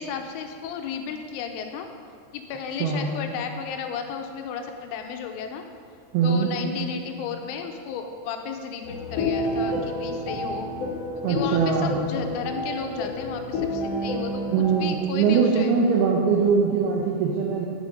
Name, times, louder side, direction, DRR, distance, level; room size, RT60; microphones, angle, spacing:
voice 1, 0.0-1.9 2.3-5.6 6.2-10.7 11.3-14.4 14.7-15.7, left 6 dB, 85° left, 5 dB, 2.9 m, -33 dB
voice 2, 6.1-6.5 11.2-11.9 14.5-17.7, right 5 dB, 85° right, -2 dB, 2.2 m, -22 dB
sound 1, 8.8-15.0, left 1 dB, 65° left, 2.1 m, -29 dB
8.9 x 8.1 x 5.1 m, 2.3 s
omnidirectional pair, 5.7 m